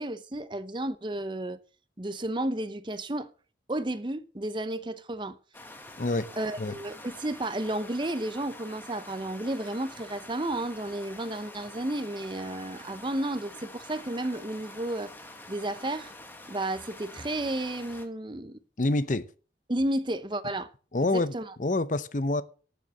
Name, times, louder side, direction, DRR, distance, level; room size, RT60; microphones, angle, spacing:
voice 1, 0.0-1.6 2.0-3.3 3.7-5.4 6.4-15.1 15.5-16.1 16.5-18.6 19.7-20.7 21.0-21.5, right 1 dB, 25° right, 0.7 m, -32 dB
sound 1, 5.5-18.1, left 1 dB, 10° left, 1.4 m, -47 dB
voice 2, 6.0-6.3 6.6-6.7 18.8-19.3 20.9-22.4, left 2 dB, 45° left, 0.7 m, -27 dB
13.0 x 6.9 x 7.4 m
head